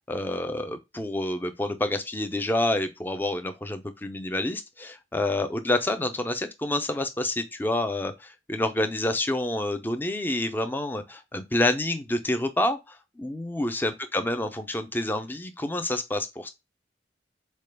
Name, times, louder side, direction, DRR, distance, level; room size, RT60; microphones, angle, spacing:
voice 1, 0.0-16.5, left 1 dB, 10° left, 0.4 m, -28 dB
4.2 x 2.2 x 3.2 m
head